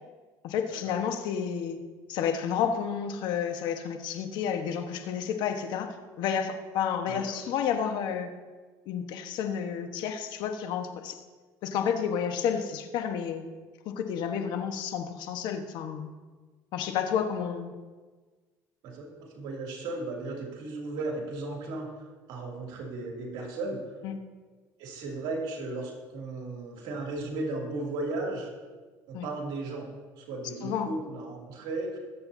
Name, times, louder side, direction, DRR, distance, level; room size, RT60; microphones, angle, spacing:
voice 1, 0.4-1.8 2.1-8.3 8.9-11.2 11.6-13.4 13.8-16.1 16.7-17.7 24.0-24.2 29.1-29.3 30.6-30.9, left 8 dB, 70° left, 6 dB, 1.3 m, -31 dB
voice 2, 7.1-7.4 18.8-21.9 22.3-23.8 24.8-28.5 29.1-29.9 30.2-32.0, right 2 dB, 75° right, 0 dB, 2.6 m, -35 dB
21.5 x 8.0 x 2.8 m, 1.4 s
supercardioid pair, 105°, 8 cm